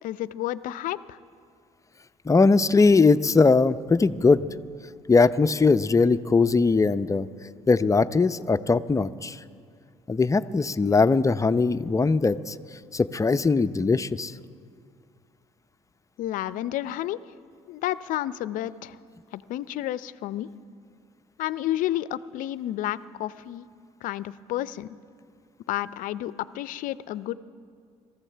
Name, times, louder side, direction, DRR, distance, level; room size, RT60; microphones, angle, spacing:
voice 1, 0.0-1.2 16.2-17.2 17.7-19.0 19.3-20.5 21.4-23.7 24.0-24.9 25.7-27.3, left 13 dB, 65° left, 17 dB, 0.6 m, -31 dB
voice 2, 2.3-4.4 5.1-7.3 7.7-9.4 10.1-12.5 12.9-14.3, left 4 dB, 20° left, 12 dB, 0.6 m, -20 dB
26.0 x 14.5 x 3.4 m, 2.2 s
hypercardioid pair, 60°, 15 cm